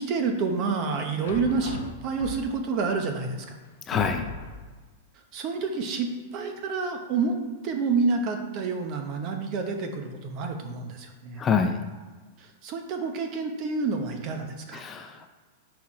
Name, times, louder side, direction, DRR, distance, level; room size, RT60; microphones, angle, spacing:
voice 1, 0.0-3.6 5.3-7.4 7.6-11.4 12.4-14.8, right 4 dB, 35° right, 4 dB, 0.8 m, -28 dB
sound 1, 1.2-2.7 3.4-3.5 3.9-4.8, left 4 dB, 75° left, 0.8 m, -36 dB
voice 2, 3.9-4.3 11.4-11.8 14.7-15.3, left 6 dB, 20° left, 5 dB, 0.4 m, -26 dB
5.6 x 4.6 x 4.7 m, 1.4 s
supercardioid pair, 155°, 0 cm